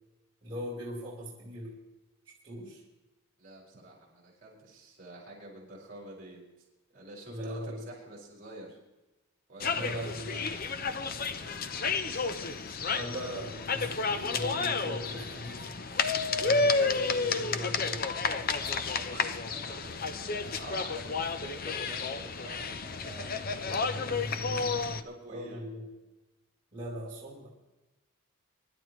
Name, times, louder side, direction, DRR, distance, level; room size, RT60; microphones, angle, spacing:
voice 1, 0.4-1.8 2.4-2.8 7.3-7.9 9.7-10.5 12.6-18.1 25.3-25.9 26.7-27.5, equal, 25° right, -9 dB, 5.0 m, -40 dB
voice 2, 3.4-6.4 6.9-8.8 9.5-10.6 11.4-11.6 18.6-24.6 25.0-25.6, right 2 dB, 40° right, -3 dB, 5.8 m, -48 dB
sound 1, 9.6-25.0, left 4 dB, 45° left, 0.8 m, -31 dB
25.5 x 12.0 x 3.2 m, 1.0 s
head